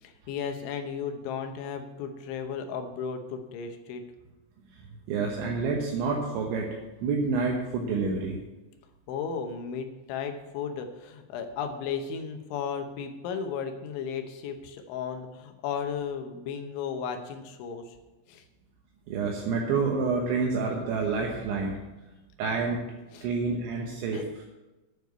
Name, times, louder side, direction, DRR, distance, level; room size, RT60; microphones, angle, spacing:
voice 1, 0.0-4.0 9.1-18.0 18.3-18.4 23.1-23.3 24.1-24.4, left 6 dB, 75° left, 6 dB, 3.2 m, -35 dB
voice 2, 4.7-8.4 19.1-21.7 22.4-22.8 23.2-24.2, right 4 dB, 75° right, 0 dB, 3.3 m, -28 dB
9.5 x 7.2 x 8.1 m, 1.1 s
omnidirectional pair, 5.6 m